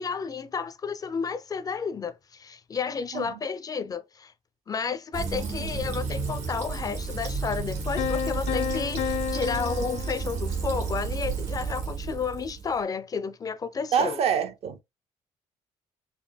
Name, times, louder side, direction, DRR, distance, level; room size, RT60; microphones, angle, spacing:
voice 1, 0.0-4.3 4.7-14.2, left 5 dB, 30° left, 0.4 m, -32 dB
Fill (with liquid), 5.1-12.8, right 5 dB, 70° right, 1.7 m, -32 dB
sound 1, 8.0-10.9, left 8 dB, 85° left, 0.6 m, -32 dB
voice 2, 13.9-14.8, right 8 dB, 55° right, 0.7 m, -26 dB
5.2 x 2.6 x 2.2 m
cardioid pair, 135°, 12 cm